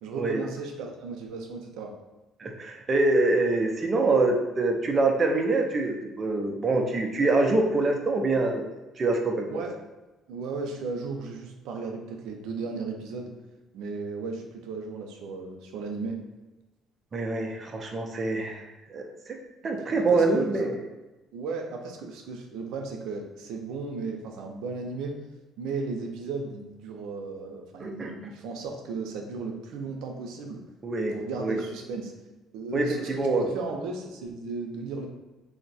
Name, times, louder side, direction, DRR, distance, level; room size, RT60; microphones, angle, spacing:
voice 1, 0.0-1.9 9.5-9.7 10.3-13.3 13.7-16.2 19.9-20.5 21.3-25.2 25.6-30.6 31.1-32.1 32.5-35.1, right 4 dB, 85° right, 2 dB, 0.5 m, -35 dB
voice 2, 2.4-8.7 9.0-9.6 17.1-19.4 19.6-20.8 27.8-28.1 30.8-31.1 31.4-31.6 32.7-33.5, right 2 dB, 30° right, 2 dB, 0.4 m, -25 dB
2.6 x 2.1 x 4.0 m, 1.1 s
cardioid pair, 115°, 0 cm